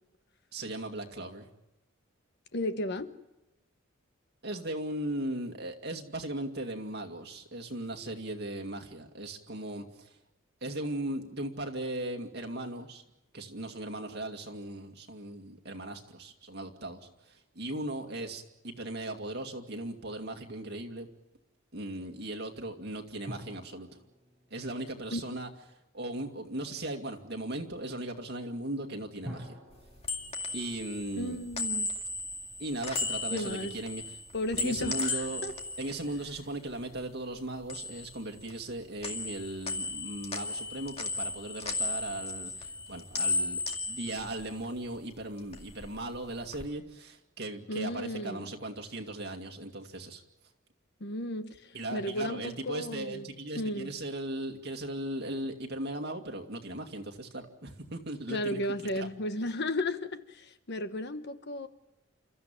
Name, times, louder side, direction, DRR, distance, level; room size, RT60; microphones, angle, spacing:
voice 1, 0.5-1.5 4.4-10.2 10.6-13.0 13.3-21.1 21.7-23.9 24.5-25.5 25.9-29.6 30.5-31.4 32.6-34.2 34.6-35.4 35.8-50.2 51.7-59.1, right 1 dB, 55° right, 3 dB, 2.3 m, -38 dB
voice 2, 2.5-3.1 25.1-25.2 31.2-31.9 33.3-33.8 34.3-35.5 47.7-48.5 51.0-53.3 53.6-53.9 58.3-61.7, left 1 dB, 55° left, 10 dB, 1.2 m, -34 dB
sound 1, 23.3-25.9 29.2-31.9 32.1-32.2, equal, 5° right, 7.4 m, -48 dB
sound 2, 29.7-37.0 37.3-38.7 39.0-45.0 45.3-46.7, left 3 dB, 30° left, 2.2 m, -36 dB
29.5 x 14.0 x 9.1 m, 1.0 s
head